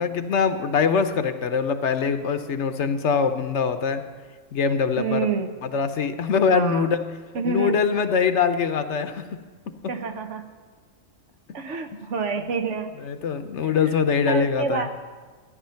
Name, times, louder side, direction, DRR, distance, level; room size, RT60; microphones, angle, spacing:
voice 1, 0.0-4.0 4.5-5.3 5.7-7.0 7.4-9.3 9.7-9.9 12.0-12.1 13.0-14.9, left 6 dB, 65° left, 9 dB, 1.0 m, -23 dB
voice 2, 5.0-5.5 6.5-6.9 7.3-7.8 9.9-10.5 11.5-13.0 14.3-14.9, right 4 dB, 70° right, 7 dB, 1.3 m, -27 dB
14.0 x 9.9 x 5.7 m, 1.4 s
omnidirectional pair, 1.3 m